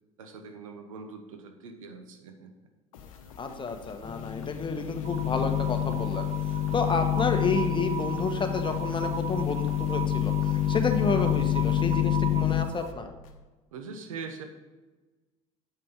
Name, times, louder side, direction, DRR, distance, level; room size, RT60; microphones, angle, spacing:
voice 1, 0.2-2.5 13.7-14.4, right 5 dB, 90° right, 5 dB, 1.1 m, -42 dB
sound 1, 2.9-13.4, left 4 dB, 85° left, 0.9 m, -48 dB
voice 2, 3.4-6.3 6.7-13.1, left 4 dB, 30° left, 6 dB, 1.3 m, -30 dB
sound 2, 4.0-12.7, left 12 dB, 45° left, 0.8 m, -28 dB
sound 3, 5.0-12.9, right 8 dB, 40° right, 0.4 m, -38 dB
8.0 x 5.9 x 5.2 m, 1.2 s
hypercardioid pair, 70°, 17 cm